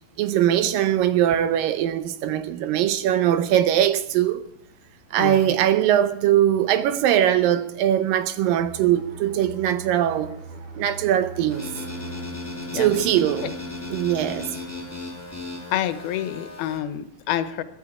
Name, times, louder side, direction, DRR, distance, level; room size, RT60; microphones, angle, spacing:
voice 1, 0.2-4.4 5.1-10.3 10.8-11.7 12.7-13.5 13.9-14.6, right 11 dB, 75° right, 2.3 m, -21 dB
voice 2, 5.2-5.5 12.7-12.9 15.7-17.6, left 11 dB, 80° left, 2.8 m, -28 dB
sound 1, 8.6-14.0 14.4-14.6, right 3 dB, 50° right, 3.1 m, -41 dB
sound 2, 11.5-16.8, left 2 dB, 5° left, 2.2 m, -35 dB
21.5 x 12.5 x 4.8 m
omnidirectional pair, 4.4 m